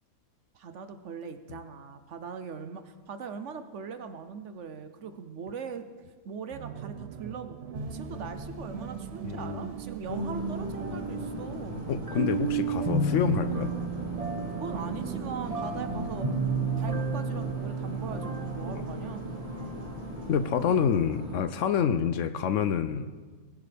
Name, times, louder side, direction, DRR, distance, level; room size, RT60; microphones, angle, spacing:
voice 1, 0.5-5.9 6.2-11.9 14.4-16.4 16.8-19.3, right 6 dB, 60° right, 9 dB, 1.0 m, -40 dB
sound 1, 6.5-16.5, right 10 dB, 85° right, 0.5 m, -41 dB
sound 2, 7.7-20.6, right 3 dB, 30° right, 1.0 m, -33 dB
voice 2, 9.2-9.7 11.9-13.8 15.9-16.1 20.3-23.2, left 8 dB, 65° left, 12 dB, 0.9 m, -27 dB
sound 3, 10.1-21.4, left 1 dB, 25° left, 3.9 m, -39 dB
20.5 x 11.0 x 3.4 m, 1.4 s
omnidirectional pair, 1.5 m